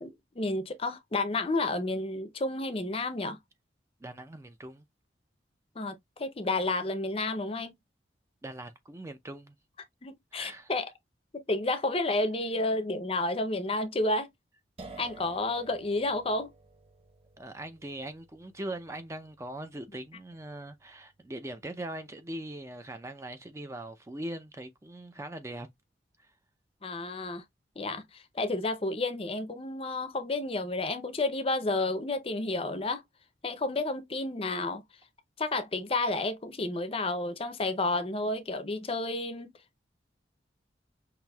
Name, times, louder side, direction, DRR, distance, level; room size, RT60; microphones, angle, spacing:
voice 1, 0.0-3.4 5.8-7.7 10.0-10.9 11.5-14.3 15.0-16.5 26.8-27.4 27.8-33.0 33.4-34.8 35.4-39.5, left 2 dB, 30° left, 0.6 m, -31 dB
voice 2, 4.0-4.8 8.4-9.6 10.3-10.7 17.4-25.7 26.2-26.3, right 1 dB, 15° right, 0.4 m, -41 dB
sound 1, 14.8-22.3, right 3 dB, 35° right, 0.8 m, -53 dB
5.7 x 2.6 x 2.2 m
head